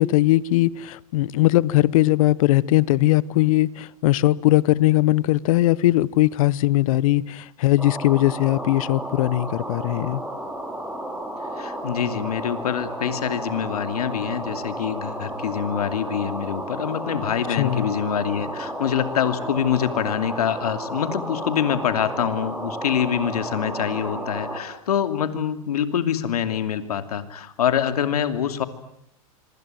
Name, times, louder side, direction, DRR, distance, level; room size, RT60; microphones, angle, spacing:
voice 1, 0.0-10.2 17.6-17.9, left 17 dB, 65° left, 22 dB, 1.0 m, -20 dB
sound 1, 7.8-24.6, right 1 dB, 5° right, 6.0 m, -32 dB
voice 2, 11.6-28.6, left 9 dB, 85° left, 10 dB, 2.7 m, -25 dB
26.0 x 24.5 x 9.3 m, 0.75 s
hypercardioid pair, 120°, 19 cm